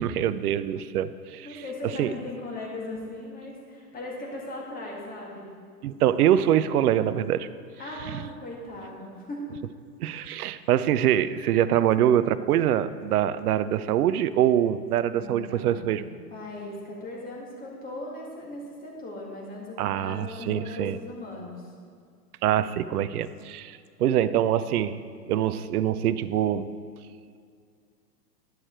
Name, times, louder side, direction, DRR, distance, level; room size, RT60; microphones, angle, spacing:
voice 1, 0.0-1.5 2.0-2.1 5.8-7.5 10.0-16.0 19.8-21.0 22.4-25.0 25.3-26.7, right 10 dB, 65° right, 15 dB, 0.6 m, -24 dB
voice 2, 1.4-5.5 7.8-9.5 15.1-16.0 16.3-21.7, left 2 dB, 15° left, -2 dB, 1.8 m, -38 dB
11.0 x 6.4 x 4.5 m, 2.1 s
hypercardioid pair, 115°, 49 cm